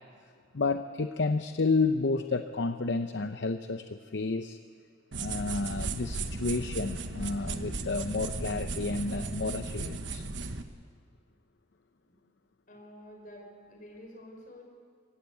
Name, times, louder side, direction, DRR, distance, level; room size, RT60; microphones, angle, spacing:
voice 1, 0.5-4.6 5.1-10.3, left 3 dB, 70° left, 8 dB, 0.7 m, -31 dB
sound 1, 5.1-10.6, right 3 dB, 80° right, 1.2 m, -36 dB
voice 2, 12.7-14.6, equal, 50° left, 1 dB, 5.2 m, -49 dB
25.0 x 16.0 x 8.3 m, 2.1 s
head